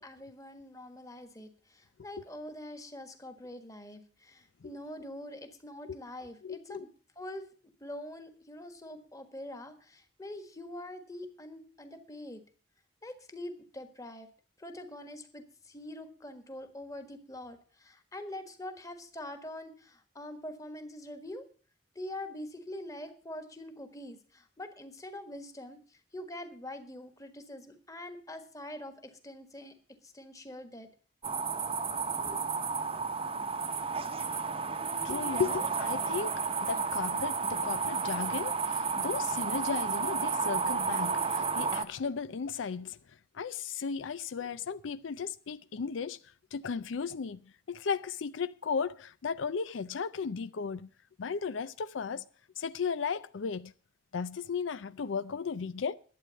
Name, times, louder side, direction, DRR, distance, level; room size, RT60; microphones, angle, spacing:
voice 1, 0.0-6.9 7.2-7.4 7.8-12.4 13.0-14.3 14.6-21.5 21.9-25.8 26.1-29.7 30.0-30.9 32.1-32.4, left 1 dB, 20° left, 1.5 m, -44 dB
voice 2, 6.4-6.9 35.0-43.0 43.3-46.2 46.5-47.4 47.7-50.9 51.2-52.2 52.6-53.7 54.1-56.0, left 5 dB, 85° left, 0.5 m, -35 dB
sound 1, 31.2-41.8, right 5 dB, 30° right, 0.9 m, -32 dB
11.5 x 8.5 x 7.0 m
head